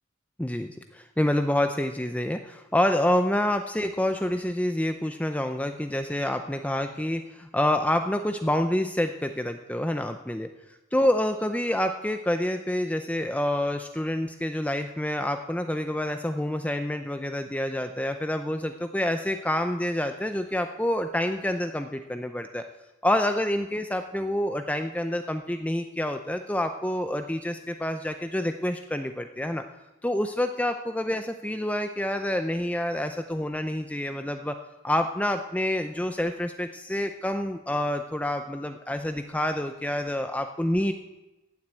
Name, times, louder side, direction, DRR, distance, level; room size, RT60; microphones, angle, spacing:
voice 1, 0.4-10.5 10.9-22.6 23.0-29.6 30.0-34.6 34.8-40.9, left 1 dB, 5° left, 7 dB, 0.5 m, -27 dB
15.5 x 7.7 x 8.8 m, 1.0 s
head